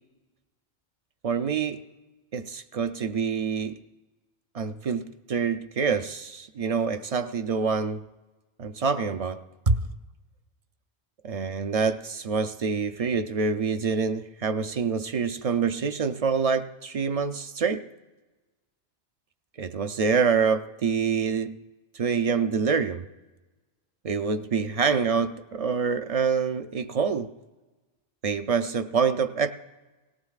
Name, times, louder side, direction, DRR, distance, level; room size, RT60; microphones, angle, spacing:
voice 1, 1.2-1.8 2.3-3.8 4.5-8.0 8.6-9.8 11.2-17.9 19.6-21.6 21.9-23.1 24.0-27.3 28.2-29.5, right 5 dB, 55° right, 0.4 m, -26 dB
18.0 x 18.0 x 2.4 m
omnidirectional pair, 1.1 m